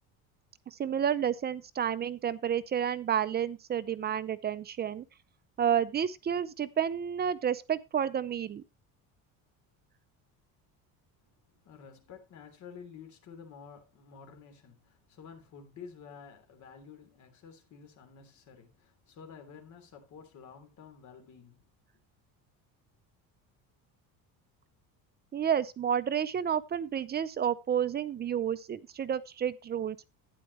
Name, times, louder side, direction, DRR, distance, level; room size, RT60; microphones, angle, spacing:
voice 1, 0.7-5.0 5.6-8.6 25.3-30.0, right 8 dB, 25° right, 0.5 m, -30 dB
voice 2, 11.6-21.6, left 6 dB, 50° left, 3.2 m, -51 dB
11.5 x 9.7 x 3.1 m
cardioid pair, 140°, 37 cm